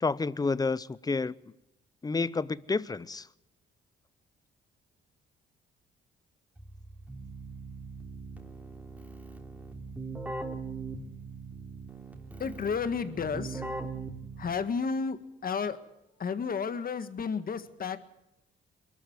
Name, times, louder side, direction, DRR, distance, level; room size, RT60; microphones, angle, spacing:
voice 1, 0.0-1.3 2.0-3.3, left 4 dB, 20° left, 19 dB, 0.7 m, -29 dB
Keyboard (musical), 6.6-14.9, right 3 dB, 5° right, 3.5 m, -41 dB
voice 2, 12.4-13.7 14.4-15.8 16.2-18.0, left 5 dB, 45° left, 11 dB, 1.7 m, -32 dB
22.5 x 13.0 x 9.6 m, 0.89 s
cardioid pair, 90°, 20 cm